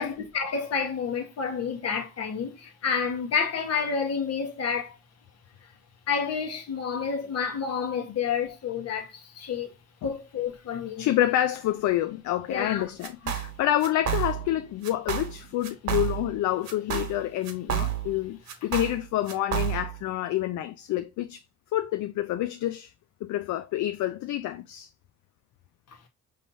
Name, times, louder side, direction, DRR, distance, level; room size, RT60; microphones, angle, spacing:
voice 1, 0.0-5.0 6.1-9.7 10.0-11.1 12.5-12.8 13.2-13.3, left 6 dB, 55° left, 1.3 m, -29 dB
voice 2, 11.0-21.4 21.7-22.9 23.2-24.9, left 13 dB, 75° left, 0.5 m, -28 dB
sound 1, 13.0-13.5 13.8-14.5 14.8-15.4 15.6-16.4 16.7-18.2 18.5-20.0, right 10 dB, 65° right, 1.2 m, -30 dB
5.6 x 3.2 x 2.6 m
cardioid pair, 90°, 30 cm